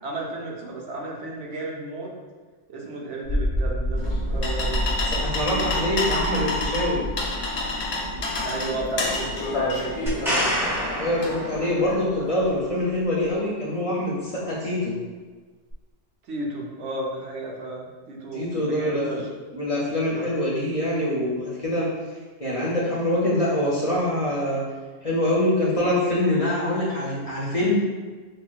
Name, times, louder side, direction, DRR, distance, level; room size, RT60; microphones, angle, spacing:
voice 1, 0.0-2.1 2.7-4.9 8.4-10.5 12.1-12.4 16.3-19.3 20.1-20.4, right 2 dB, 75° right, -2 dB, 1.0 m, -33 dB
sound 1, 3.2-13.4, equal, 50° right, 1.3 m, -30 dB
sound 2, 4.0-12.0, left 2 dB, 75° left, 0.9 m, -29 dB
voice 2, 5.1-7.0 11.0-15.0 18.3-19.0 19.5-21.9 22.4-24.6 25.0-27.8, left 1 dB, 35° left, -6 dB, 0.6 m, -24 dB
sound 3, 10.1-12.0 15.7-15.8, equal, ahead, 1.1 m, -27 dB
6.0 x 2.2 x 2.4 m, 1.4 s
omnidirectional pair, 1.2 m